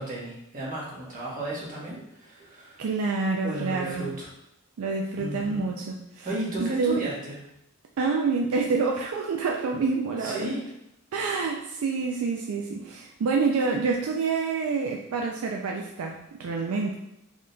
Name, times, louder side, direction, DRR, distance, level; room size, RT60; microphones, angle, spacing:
voice 1, 0.0-2.8 3.4-4.3 5.2-5.7 6.2-7.4 10.2-10.6, right 1 dB, 40° right, -5 dB, 1.2 m, -34 dB
voice 2, 2.8-4.1 4.8-6.3 6.6-7.0 8.0-10.5 11.1-16.9, right 4 dB, 75° right, 0 dB, 0.4 m, -27 dB
3.9 x 3.6 x 2.2 m, 0.83 s
head